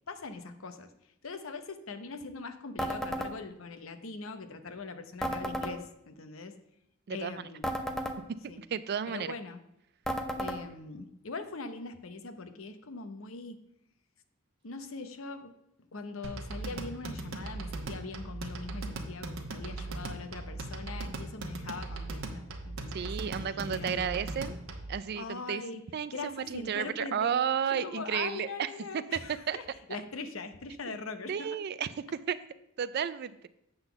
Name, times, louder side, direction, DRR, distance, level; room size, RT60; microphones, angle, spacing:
voice 1, 0.1-0.9 1.2-6.6 7.1-7.8 8.5-8.6 9.0-9.6 10.4-13.6 14.6-15.5 15.9-24.3 25.2-25.8 26.1-27.4 27.7-31.6, left 3 dB, 70° left, 9 dB, 0.8 m, -42 dB
sound 1, 2.8-3.3 5.2-5.7 7.6-8.2 10.1-10.6, equal, ahead, 0.6 m, -33 dB
voice 2, 7.1-7.4 8.4-9.4 22.9-24.6 24.9-25.6 25.9-28.7 29.1-29.2 29.5-29.6 30.9-31.0 31.3-31.9 32.3-32.4 32.8-33.5, right 8 dB, 50° right, 15 dB, 0.4 m, -32 dB
sound 2, 16.2-25.0, right 2 dB, 70° right, 1.1 m, -39 dB
8.0 x 3.9 x 6.9 m, 0.79 s
head